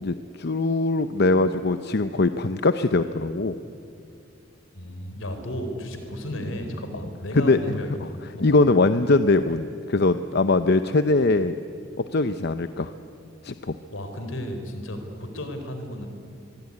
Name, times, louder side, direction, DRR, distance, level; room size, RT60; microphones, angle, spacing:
voice 1, 0.0-3.6 7.3-7.8 8.4-11.5 12.1-12.9 13.4-13.8, left 2 dB, 55° left, 10 dB, 0.7 m, -21 dB
voice 2, 4.7-8.7 13.9-16.1, equal, 80° left, 6 dB, 4.2 m, -34 dB
24.5 x 22.0 x 9.7 m, 2.6 s
head